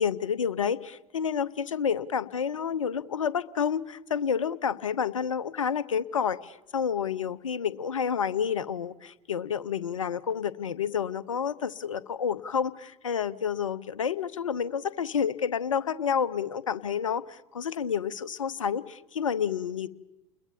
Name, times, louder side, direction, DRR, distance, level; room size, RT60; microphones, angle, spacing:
voice 1, 0.0-19.9, left 7 dB, 80° left, 16 dB, 0.9 m, -29 dB
29.5 x 21.5 x 7.1 m, 0.97 s
figure-of-eight pair, 75°, 16 cm